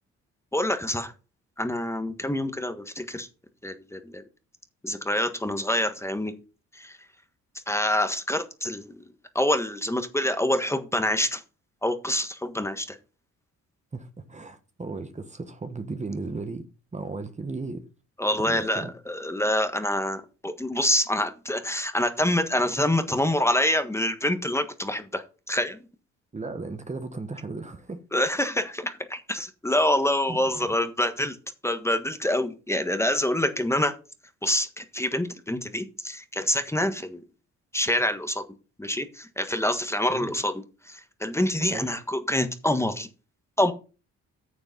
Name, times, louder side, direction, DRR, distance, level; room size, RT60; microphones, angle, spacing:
voice 1, 0.5-1.1 1.6-3.3 3.6-4.2 4.8-6.3 6.7-7.0 7.7-9.0 9.3-11.4 11.8-13.0 18.2-25.8 28.1-31.4 31.6-33.9 34.4-37.2 37.7-38.4 38.8-40.5 40.9-43.1 43.6-43.7, left 1 dB, 10° left, 1.5 m, -26 dB
voice 2, 13.9-16.6 16.9-17.8 18.4-18.9 26.3-28.0 30.3-30.7 40.1-40.4 41.7-42.0, right 3 dB, 25° right, 1.4 m, -36 dB
9.7 x 7.0 x 5.3 m
cardioid pair, 90°, 30 cm